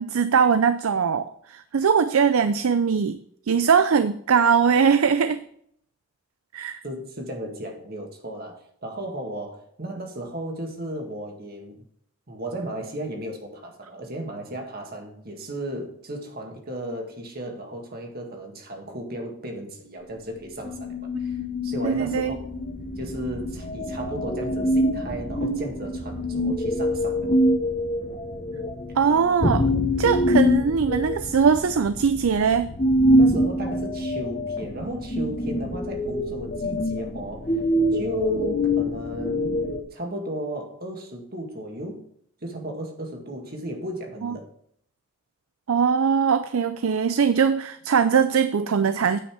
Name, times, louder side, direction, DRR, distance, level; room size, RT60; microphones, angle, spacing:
voice 1, 0.0-3.2 3.5-5.4 6.5-6.8 21.8-22.4 29.0-29.7 30.0-32.7 44.2-44.3 45.7-49.2, right 6 dB, 75° right, 0.5 m, -21 dB
voice 2, 6.8-11.8 12.3-22.4 23.0-27.3 33.2-37.6 37.9-39.6 39.9-42.0 42.4-44.5, right 1 dB, 45° right, 1.9 m, -34 dB
sound 1, 20.6-39.8, left 1 dB, 30° left, 0.9 m, -25 dB
9.3 x 5.5 x 6.0 m
head